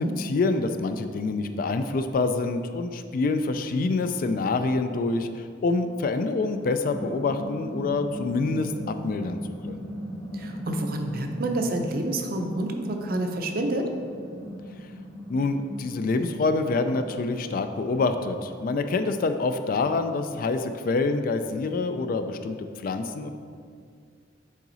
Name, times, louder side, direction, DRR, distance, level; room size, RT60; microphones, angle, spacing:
voice 1, 0.0-9.4 9.7-9.8 15.3-22.6 22.8-23.3, left 3 dB, 50° left, 8 dB, 0.3 m, -26 dB
sound 1, 6.4-20.7, equal, 20° left, 0.9 m, -40 dB
voice 2, 10.3-13.9, right 1 dB, 50° right, 3 dB, 0.6 m, -28 dB
7.3 x 3.9 x 4.0 m, 2.3 s
head